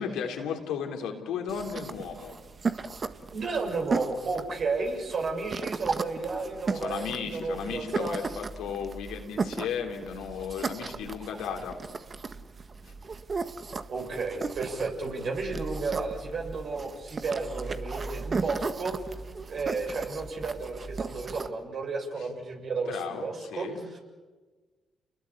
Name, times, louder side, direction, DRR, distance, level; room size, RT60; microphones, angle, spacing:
voice 1, 0.0-2.4 6.7-11.8 12.8-12.9 22.9-23.8, left 7 dB, 75° left, 3 dB, 3.5 m, -35 dB
sound 1, 1.5-21.5, right 4 dB, 45° right, 1.6 m, -36 dB
voice 2, 3.3-8.3 13.9-19.2 19.5-24.0, right 4 dB, 60° right, 2 dB, 6.9 m, -33 dB
29.5 x 20.5 x 8.6 m, 1.3 s
hypercardioid pair, 45°, 0 cm